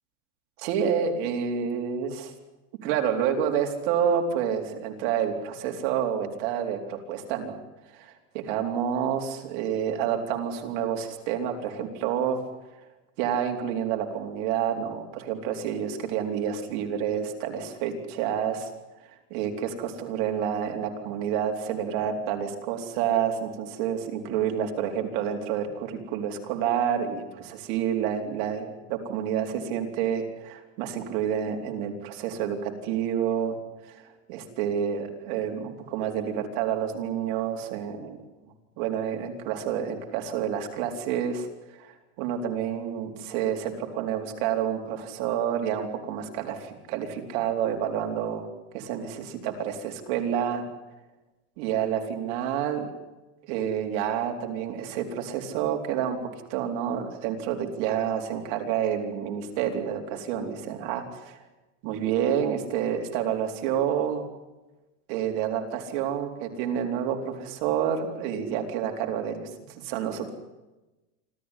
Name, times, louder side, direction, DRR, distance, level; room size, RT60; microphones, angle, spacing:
voice 1, 0.6-2.3 2.8-7.6 7.9-12.4 13.2-18.7 19.3-33.6 33.9-34.0 34.3-38.2 38.8-41.9 42.2-48.5 48.7-50.7 51.6-52.9 53.4-56.2 56.5-61.4 61.8-64.2 65.1-70.3, right 8 dB, 55° right, 4 dB, 4.0 m, -29 dB
26.5 x 14.5 x 10.0 m, 1.1 s
supercardioid pair, 155°, 35 cm